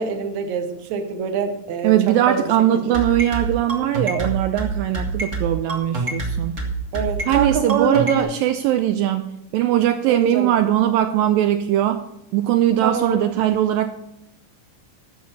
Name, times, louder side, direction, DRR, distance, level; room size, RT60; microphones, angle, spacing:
voice 1, 0.0-2.4 6.9-8.3 10.1-10.5 12.8-13.2, right 5 dB, 65° right, 6 dB, 1.8 m, -25 dB
voice 2, 1.8-6.6 7.2-9.3 9.5-12.0 12.3-13.9, right 12 dB, 85° right, 8 dB, 2.0 m, -20 dB
sound 1, 2.9-8.2, right 3 dB, 35° right, 1.1 m, -25 dB
12.5 x 7.0 x 5.3 m, 0.84 s
omnidirectional pair, 4.5 m